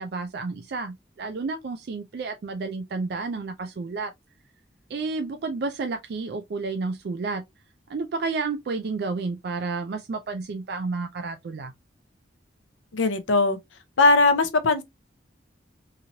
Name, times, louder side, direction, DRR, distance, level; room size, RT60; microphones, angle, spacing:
voice 1, 0.0-4.1 4.9-7.4 7.9-11.7, right 4 dB, 55° right, 0.3 m, -31 dB
voice 2, 12.9-13.6 14.0-14.8, left 3 dB, 85° left, 0.6 m, -19 dB
2.9 x 2.8 x 2.6 m
head